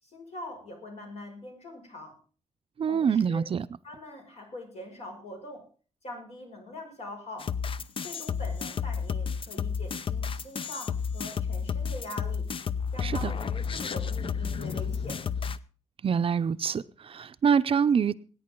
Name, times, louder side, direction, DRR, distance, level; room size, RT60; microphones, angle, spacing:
voice 1, 0.0-2.1 2.9-3.4 3.8-5.6 6.0-7.5 8.0-12.4 12.9-15.2, left 1 dB, 65° left, 5.9 m, -43 dB
voice 2, 2.8-3.7 13.0-13.3 16.0-18.1, right 7 dB, 50° right, 0.6 m, -25 dB
sound 1, 7.4-15.6, left 6 dB, 45° left, 0.6 m, -31 dB
20.0 x 9.4 x 3.8 m
wide cardioid pair, 120°, 12 cm